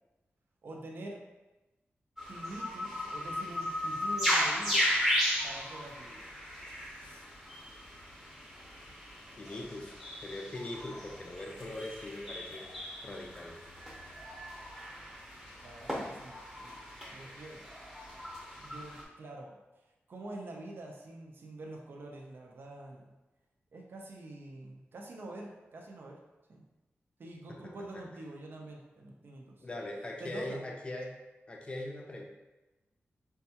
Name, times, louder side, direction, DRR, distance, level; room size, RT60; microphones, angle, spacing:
voice 1, 0.6-1.2 2.3-4.9 5.4-6.2 15.6-17.6 18.6-19.6 20.1-23.1 23.7-26.2 26.5-26.6 27.2-29.7 30.2-30.6, right 2 dB, 55° right, 0 dB, 0.5 m, -46 dB
sound 1, 2.2-19.0, left 1 dB, 5° right, 0.8 m, -36 dB
voice 2, 9.4-10.0 10.2-12.7 13.0-13.6 27.6-27.7 29.6-31.1 31.5-32.3, left 1 dB, 25° left, 0 dB, 0.4 m, -41 dB
5.2 x 2.3 x 2.8 m, 1.1 s
wide cardioid pair, 175°, 4 cm